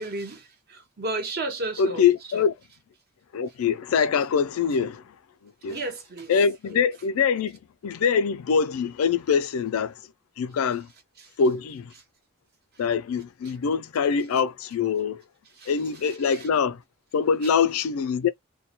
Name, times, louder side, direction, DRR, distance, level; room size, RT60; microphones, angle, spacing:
voice 1, 0.0-2.0 2.3-2.4 5.7-6.3 11.2-11.3 15.6-15.7, right 2 dB, 50° right, 0.9 m, -32 dB
voice 2, 1.8-2.5 3.3-5.0 5.6-5.8 6.3-9.9 10.4-10.9 11.4-11.9 12.8-15.2 15.7-16.8 17.1-18.3, left 6 dB, 90° left, 0.4 m, -24 dB
2.2 x 2.1 x 2.9 m
head